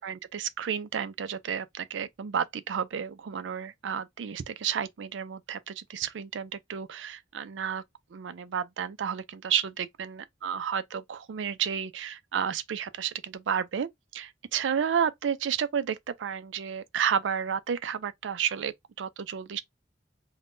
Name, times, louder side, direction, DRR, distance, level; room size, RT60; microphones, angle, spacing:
voice 1, 0.0-7.8 8.1-19.6, right 8 dB, 80° right, 0.4 m, -31 dB
3.4 x 2.2 x 2.5 m
head